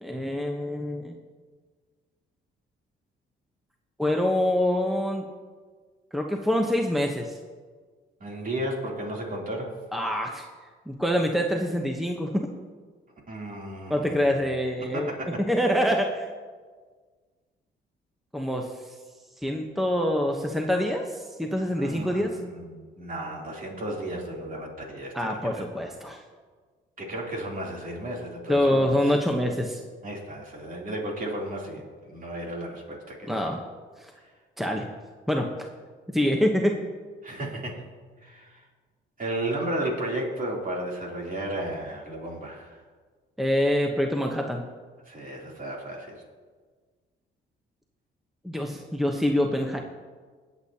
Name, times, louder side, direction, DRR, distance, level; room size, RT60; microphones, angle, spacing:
voice 1, 0.0-1.1 4.0-5.3 6.1-7.3 9.9-10.4 10.9-12.5 13.9-15.1 15.5-16.3 18.3-19.0 19.4-22.4 25.1-26.2 28.5-29.8 33.3-33.6 34.0-34.1 34.6-34.9 35.3-35.5 36.1-36.8 43.4-44.6 48.4-49.8, equal, ahead, 2 dB, 1.0 m, -25 dB
voice 2, 8.2-9.8 13.3-14.4 14.8-15.7 21.8-25.7 27.0-29.2 30.0-33.4 37.2-38.6 39.2-42.8 45.1-46.2, right 1 dB, 45° right, -2 dB, 3.2 m, -34 dB
22.0 x 8.3 x 2.9 m, 1.5 s
cardioid pair, 90°, 20 cm